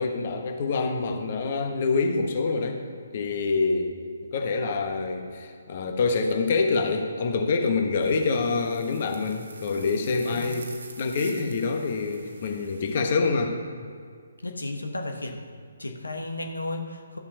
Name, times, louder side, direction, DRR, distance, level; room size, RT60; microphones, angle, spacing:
voice 1, 0.0-2.8 3.1-4.0 4.3-10.7 11.0-13.5, left 4 dB, 40° left, 4 dB, 1.2 m, -26 dB
sound 1, 8.0-13.0, right 3 dB, 60° right, 1.3 m, -47 dB
voice 2, 14.4-15.4 15.8-17.2, left 2 dB, 75° left, 4 dB, 1.1 m, -33 dB
13.0 x 7.2 x 5.5 m, 2.2 s
figure-of-eight pair, 135°, 0 cm